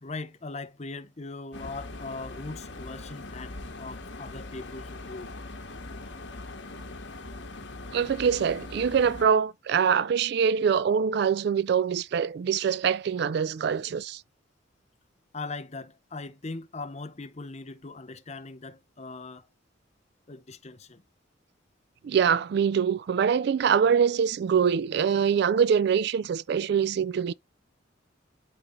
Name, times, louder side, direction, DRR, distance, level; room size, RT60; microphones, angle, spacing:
voice 1, 0.0-5.3 15.3-19.5 20.3-21.0, left 3 dB, 35° left, 0.7 m, -40 dB
sound 1, 1.5-9.2, left 2 dB, 60° left, 1.4 m, -41 dB
voice 2, 7.9-14.2 22.0-27.3, right 7 dB, 55° right, 0.3 m, -24 dB
11.5 x 4.4 x 2.6 m
head